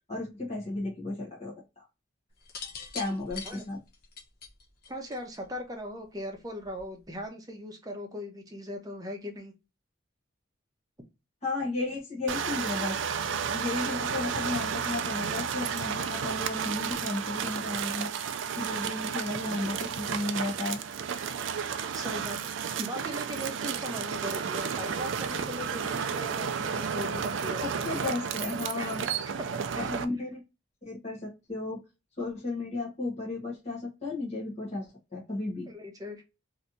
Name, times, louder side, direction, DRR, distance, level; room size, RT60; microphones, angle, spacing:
voice 1, 0.1-1.8 2.9-3.8 11.4-13.0 13.5-18.1 18.6-20.8 27.6-29.1 29.8-30.4 30.8-31.8 32.2-35.7, left 2 dB, 35° left, -5 dB, 1.2 m, -34 dB
sound 1, 2.4-5.6 6.6-7.0, left 5 dB, 50° left, 0.9 m, -42 dB
voice 2, 4.9-9.5 19.4-19.8 21.9-28.0 28.8-28.9 29.7-30.0 35.7-36.2, equal, 20° right, 3 dB, 0.8 m, -39 dB
sound 2, 12.3-30.0, right 7 dB, 70° right, 0.4 m, -32 dB
3.2 x 2.8 x 2.6 m, 0.25 s
head